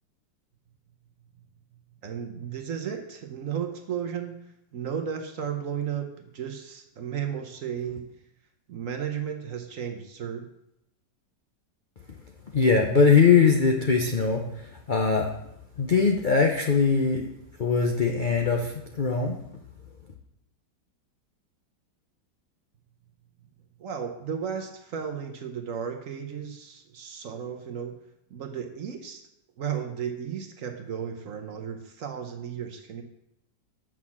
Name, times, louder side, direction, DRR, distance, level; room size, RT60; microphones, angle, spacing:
voice 1, 2.0-4.4 4.7-8.1 8.7-10.5 23.8-28.0 28.3-29.2 29.6-33.0, right 8 dB, 55° right, 5 dB, 1.0 m, -34 dB
voice 2, 12.5-15.4 15.8-17.3 17.6-19.4, left 5 dB, 60° left, 2 dB, 0.5 m, -21 dB
6.3 x 6.0 x 7.2 m, 0.82 s
omnidirectional pair, 1.9 m